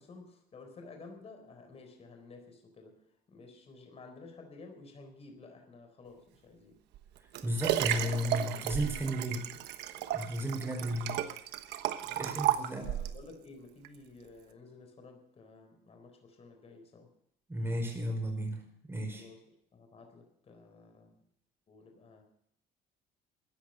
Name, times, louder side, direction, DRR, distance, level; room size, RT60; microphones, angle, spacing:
voice 1, 0.0-3.0 3.3-6.8 12.0-17.1 19.1-21.2 21.7-22.2, left 3 dB, 35° left, 5 dB, 4.0 m, -53 dB
Liquid, 6.9-13.2 13.8-13.9, right 12 dB, 85° right, 1.2 m, -34 dB
voice 2, 7.4-9.4 10.1-11.2 12.2-12.8 17.5-18.6 18.9-19.2, equal, 15° right, 1 dB, 4.9 m, -33 dB
14.5 x 10.5 x 6.6 m, 0.71 s
cardioid pair, 110°, 17 cm